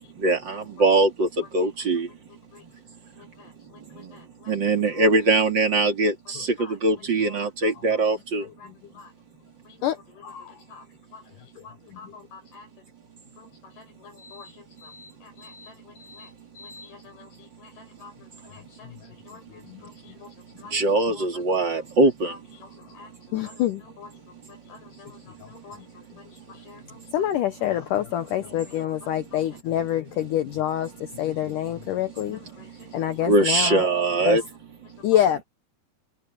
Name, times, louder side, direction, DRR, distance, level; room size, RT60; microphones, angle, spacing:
voice 1, 0.2-1.3 1.5-2.1 4.5-6.4 6.8-8.4 20.7-22.3 33.3-34.4, right 2 dB, 30° right, 2.8 m, -21 dB
voice 2, 1.4-1.7 2.1-2.7 3.2-5.1 6.6-6.8 7.2-8.0 8.6-9.1 9.7-10.9 11.1-12.7 13.2-14.9 15.2-16.3 16.6-20.8 21.1-21.4 21.8-21.9 22.3-27.3 28.6-29.4 32.3-33.3 33.7-34.0 34.4-34.5 34.9-35.2, left 5 dB, 60° left, 7.7 m, -49 dB
voice 3, 9.8-10.6 11.6-12.1 14.2-14.5 14.8-15.1 15.4-16.3 16.6-16.9 19.7-19.8 20.7-20.8 23.3-23.8 25.4-25.5 25.7-25.8 27.1-32.4 32.9-33.9 34.2-34.4 35.0-35.4, left 11 dB, 85° left, 1.8 m, -27 dB
omnidirectional pair, 5.0 m